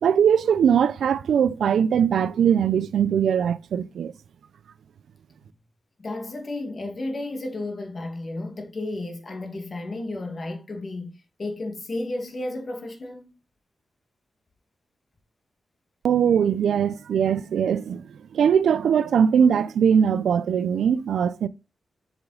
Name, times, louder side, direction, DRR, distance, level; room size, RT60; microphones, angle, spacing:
voice 1, 0.0-4.1 16.0-21.5, right 8 dB, 90° right, 0.4 m, -21 dB
voice 2, 6.0-11.1 11.4-13.3, left 2 dB, 40° left, 1.7 m, -32 dB
7.1 x 5.1 x 3.8 m
wide cardioid pair, 110°, 0 cm